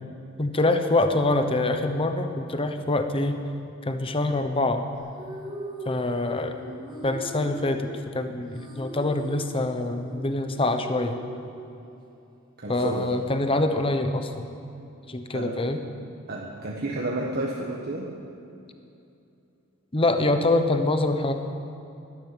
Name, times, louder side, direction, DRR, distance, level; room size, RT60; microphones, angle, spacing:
voice 1, 0.4-3.4 3.8-4.9 5.8-6.5 7.0-11.2 12.7-14.4 15.1-15.8 19.9-21.3, left 2 dB, 25° left, 7 dB, 1.0 m, -25 dB
sound 1, 4.9-12.0, right 1 dB, 25° right, 3.0 m, -40 dB
voice 2, 12.6-13.2 15.3-15.6 16.3-18.1, right 2 dB, 50° right, -2 dB, 1.3 m, -31 dB
12.5 x 12.5 x 9.2 m, 2.7 s
head